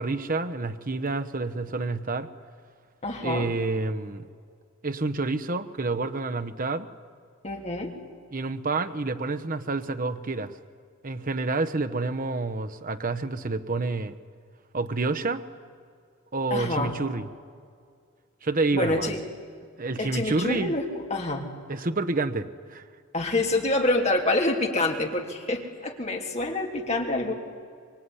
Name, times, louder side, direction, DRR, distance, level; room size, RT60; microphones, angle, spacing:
voice 1, 0.0-2.3 3.2-4.2 4.8-6.9 8.3-10.5 11.0-14.1 14.7-15.4 16.3-17.2 18.4-19.1 19.8-20.7 21.7-22.8, right 3 dB, 40° right, 9 dB, 1.0 m, -28 dB
voice 2, 3.0-3.5 7.4-7.9 16.5-16.9 18.7-19.2 20.0-21.5 23.1-27.3, left 2 dB, 30° left, 2 dB, 3.2 m, -27 dB
24.5 x 23.5 x 9.8 m, 2.2 s
head